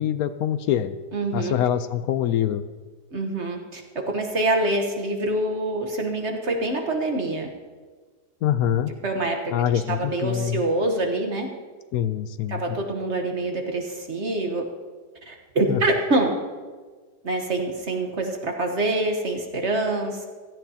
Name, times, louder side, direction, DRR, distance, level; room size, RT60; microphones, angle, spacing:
voice 1, 0.0-0.9 1.3-2.6 8.4-8.9 9.5-10.6 11.9-12.6 15.7-15.8, left 10 dB, 70° left, 11 dB, 0.9 m, -24 dB
voice 2, 1.1-1.5 3.1-7.5 9.0-11.5 12.5-14.6 15.3-16.3 17.2-20.3, right 2 dB, 45° right, 3 dB, 1.4 m, -25 dB
16.5 x 14.0 x 2.8 m, 1.4 s
omnidirectional pair, 1.8 m